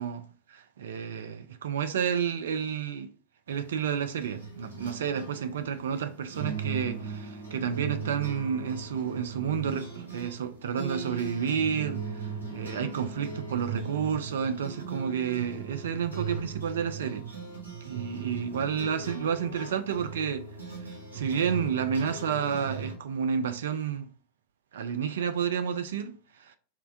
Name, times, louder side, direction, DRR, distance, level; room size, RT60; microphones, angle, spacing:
voice 1, 0.0-3.1 3.5-17.3 17.8-20.5 20.9-24.1 24.7-26.6, right 7 dB, 60° right, 0.3 m, -30 dB
sound 1, 3.5-23.0, right 5 dB, 80° right, 0.9 m, -39 dB
4.3 x 2.1 x 2.5 m
figure-of-eight pair, 90°, 0 cm